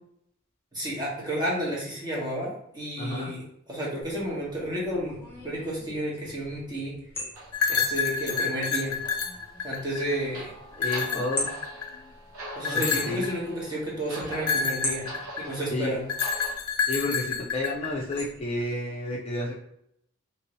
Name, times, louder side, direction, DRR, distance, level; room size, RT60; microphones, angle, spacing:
voice 1, 0.7-3.4 3.7-5.2 5.4-6.9 7.7-9.0 9.6-10.5 12.5-15.1 15.4-16.1, right 1 dB, 20° right, -5 dB, 1.2 m, -31 dB
voice 2, 3.0-3.3 10.8-11.5 12.7-13.3 15.7-16.0 16.9-19.5, left 1 dB, 30° left, -3 dB, 0.5 m, -31 dB
sound 1, 4.0-18.6, left 1 dB, 10° left, 0.9 m, -42 dB
sound 2, 7.3-16.5, right 1 dB, 75° right, 1.1 m, -43 dB
sound 3, 7.5-10.2 10.7-12.0 12.6-13.3 14.3-15.5 16.1-18.2, left 5 dB, 85° left, 0.5 m, -28 dB
3.0 x 2.8 x 3.0 m, 0.75 s
head